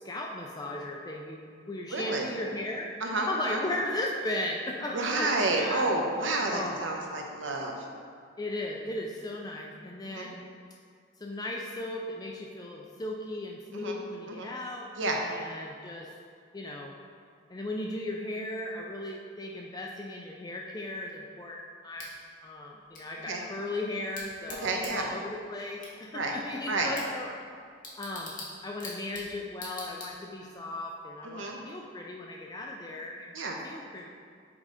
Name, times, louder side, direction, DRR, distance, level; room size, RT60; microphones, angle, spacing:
voice 1, 0.0-2.9 3.2-5.9 6.5-6.8 8.4-10.4 11.2-14.9 15.2-16.1 16.5-16.9 17.5-22.1 22.4-27.3 28.0-28.3 28.6-34.1, left 1 dB, 20° left, 0 dB, 0.4 m, -36 dB
voice 2, 1.9-2.2 3.0-3.6 4.9-7.9 10.0-10.3 13.7-14.0 14.3-14.5 15.0-15.2 23.3-23.4 24.6-25.1 26.1-26.3 26.7-26.9 31.2-31.6 33.3-33.6, right 2 dB, 75° right, 1 dB, 0.8 m, -30 dB
Bicycle / Tick, 22.0-30.5, left 2 dB, 40° left, 1.2 m, -46 dB
6.0 x 3.8 x 4.8 m, 2.2 s
head